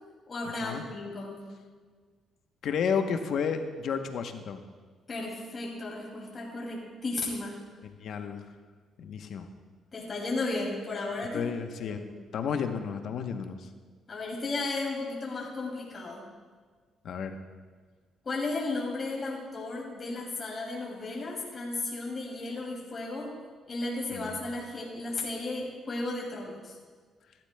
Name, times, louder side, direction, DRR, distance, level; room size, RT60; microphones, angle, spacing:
voice 1, 0.3-1.5 5.1-7.6 9.9-11.4 11.8-12.0 14.1-16.2 18.2-23.3 23.7-26.8, left 2 dB, 35° left, -3 dB, 2.4 m, -34 dB
voice 2, 2.6-4.6 8.0-8.4 9.0-9.5 11.3-12.0 12.3-13.7 17.0-17.4 24.1-24.4, left 6 dB, 70° left, 7 dB, 0.8 m, -32 dB
15.0 x 12.0 x 2.2 m, 1.5 s
cardioid pair, 90°, 0 cm